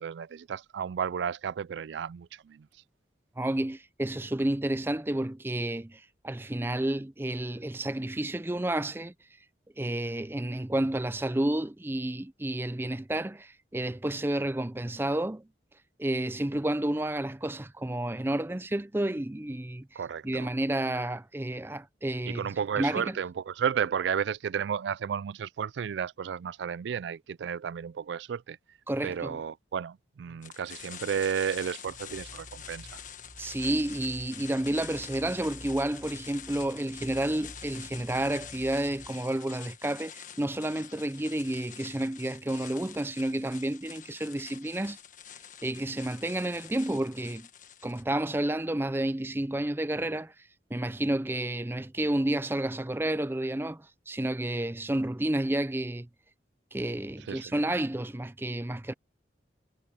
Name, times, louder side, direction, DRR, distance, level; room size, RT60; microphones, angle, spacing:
voice 1, 0.0-2.7 20.0-20.5 22.3-28.6 29.0-33.0 57.3-57.6, right 7 dB, 75° right, 0.3 m, -33 dB
voice 2, 3.4-9.1 9.8-15.5 16.0-22.5 22.8-23.2 28.9-29.4 33.4-45.0 45.6-47.5 47.8-50.3 50.7-56.1 56.7-58.9, right 1 dB, 10° right, 0.5 m, -30 dB
sound 1, 30.4-48.1, left 9 dB, 45° left, 1.5 m, -46 dB
sound 2, 31.8-39.1, equal, 30° right, 6.1 m, -50 dB
head